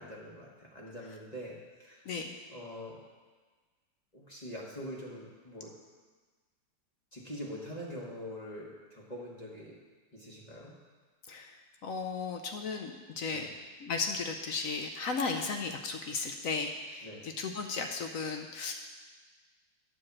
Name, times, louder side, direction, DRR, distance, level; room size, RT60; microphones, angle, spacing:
voice 1, 0.0-2.2 2.5-3.0 4.1-5.7 7.1-9.7 10.1-10.7 13.3-13.5 15.3-15.5 17.0-17.2, equal, 25° left, -4 dB, 1.4 m, -44 dB
voice 2, 2.1-2.4 11.3-11.5 11.8-13.5 13.8-18.7, left 4 dB, 65° left, 4 dB, 0.8 m, -35 dB
9.9 x 4.8 x 7.3 m, 1.4 s
omnidirectional pair, 2.0 m